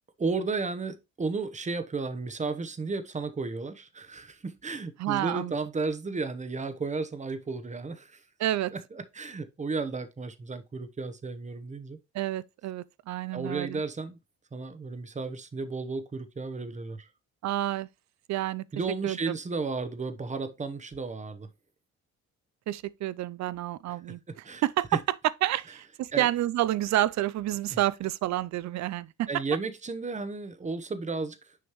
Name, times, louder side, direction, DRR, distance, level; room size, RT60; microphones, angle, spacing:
voice 1, 0.2-8.2 8.7-12.0 13.3-14.2 14.5-17.1 18.7-21.5 24.3-24.6 24.9-25.0 26.1-26.3 27.7-27.8 29.3-31.4, right 4 dB, 25° right, 0.9 m, -33 dB
voice 2, 5.0-5.5 8.4-8.7 12.1-13.8 17.4-17.9 18.3-18.6 19.0-19.3 22.7-25.0 25.4-29.3, right 14 dB, 65° right, 0.5 m, -29 dB
6.6 x 5.1 x 3.1 m
cardioid pair, 90°, 30 cm